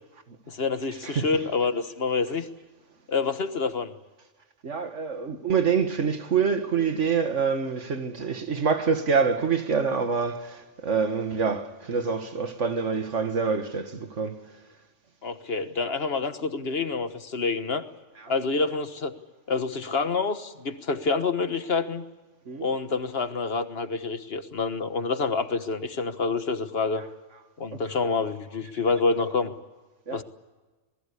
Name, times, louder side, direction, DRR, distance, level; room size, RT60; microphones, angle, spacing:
voice 1, 0.5-2.5 3.1-3.9 15.2-17.8 18.3-19.1 19.5-22.0 22.6-27.0 27.6-29.5 30.1-30.2, left 4 dB, 55° left, 1.6 m, -27 dB
voice 2, 1.0-1.5 4.6-14.4 18.2-18.4 22.5-22.7 30.1-30.2, right 5 dB, 90° right, 2.0 m, -26 dB
27.0 x 20.0 x 8.4 m
omnidirectional pair, 1.2 m